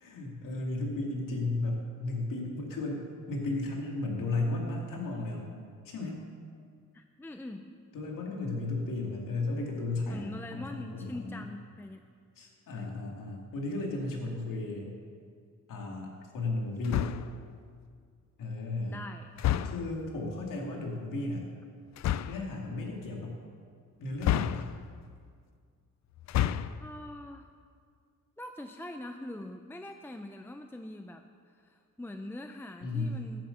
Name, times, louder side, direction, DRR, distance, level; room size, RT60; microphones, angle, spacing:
voice 1, 0.0-5.5 5.9-6.2 7.9-11.4 12.4-14.9 15.7-17.2 18.4-18.9 19.6-21.4 22.3-23.3 24.0-24.7 32.8-33.2, left 2 dB, 85° left, 0 dB, 2.4 m, -34 dB
voice 2, 6.9-7.7 10.1-12.1 12.7-12.9 18.9-19.3 26.8-27.5 28.4-31.2 31.5-33.4, left 1 dB, 5° left, 6 dB, 0.5 m, -43 dB
sound 1, 16.8-17.4 19.4-20.0 22.0-22.5 24.2-25.0 26.2-26.9, left 11 dB, 60° left, 0.4 m, -30 dB
11.0 x 7.8 x 7.9 m, 2.1 s
cardioid pair, 105°, 32 cm